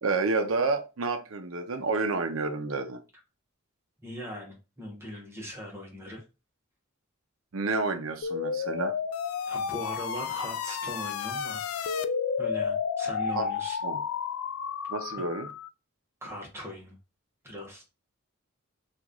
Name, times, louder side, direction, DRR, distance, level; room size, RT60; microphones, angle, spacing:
voice 1, 0.0-3.0 7.5-9.0 13.3-13.4 13.8-14.0 14.9-15.5, right 3 dB, 75° right, 0.6 m, -29 dB
voice 2, 4.0-6.2 9.5-11.6 12.4-13.8 16.2-16.9 17.4-17.8, equal, 10° right, 1.0 m, -39 dB
sound 1, 8.2-15.7, left 6 dB, 85° left, 0.3 m, -31 dB
3.0 x 2.5 x 3.6 m
head